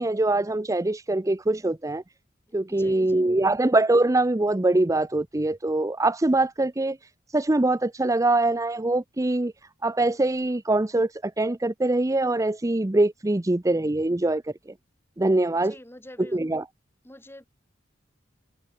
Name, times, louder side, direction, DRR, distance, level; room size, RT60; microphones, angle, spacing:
voice 1, 0.0-2.0 2.5-7.0 7.3-9.5 9.8-14.5 15.2-15.7 16.3-16.6, right 2 dB, 15° right, 0.6 m, -23 dB
voice 2, 2.7-3.2 15.6-16.4 17.0-17.4, left 1 dB, 10° left, 4.0 m, -46 dB
head